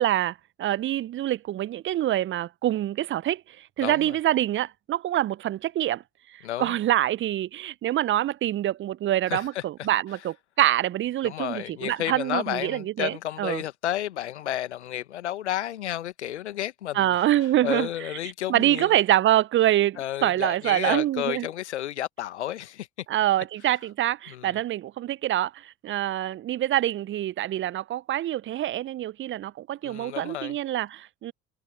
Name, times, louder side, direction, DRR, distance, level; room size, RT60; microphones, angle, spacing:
voice 1, 0.0-6.0 6.3-13.6 16.9-17.9 18.5-21.5 23.1-31.3, right 13 dB, 35° right, 0.6 m, -25 dB
voice 2, 3.8-4.2 6.4-6.8 9.3-9.9 11.2-17.2 17.6-19.0 20.0-22.9 24.3-24.6 29.8-30.6, left 12 dB, 80° left, 1.4 m, -32 dB
figure-of-eight pair, 60°, 34 cm